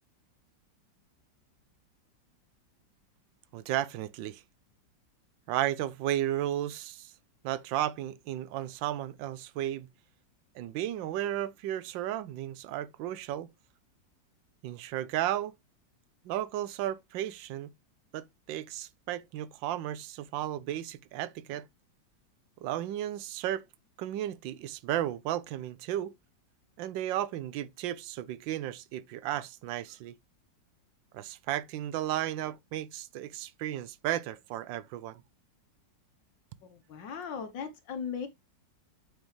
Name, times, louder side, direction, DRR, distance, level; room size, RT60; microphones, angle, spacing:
voice 1, 3.5-4.4 5.5-7.1 7.4-9.9 10.5-13.5 14.6-15.5 16.2-17.7 18.1-21.7 22.6-23.6 24.0-26.1 26.8-30.2 31.1-35.2, right 12 dB, 85° right, 1.3 m, -34 dB
voice 2, 36.6-38.3, left 6 dB, 75° left, 1.7 m, -38 dB
9.0 x 5.3 x 3.1 m
omnidirectional pair, 2.0 m